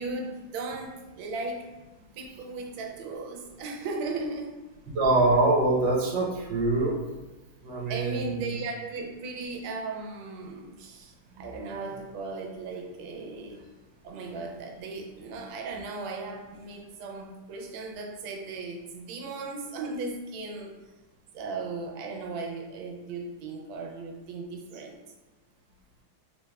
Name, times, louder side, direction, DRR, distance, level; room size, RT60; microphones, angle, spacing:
voice 1, 0.0-1.7 2.1-4.6 7.9-13.7 14.0-20.7 21.3-25.0, right 3 dB, 90° right, 2 dB, 1.4 m, -37 dB
voice 2, 4.9-7.0 7.6-8.6, right 2 dB, 70° right, -3 dB, 1.4 m, -24 dB
3.7 x 3.1 x 2.2 m, 1.1 s
omnidirectional pair, 2.2 m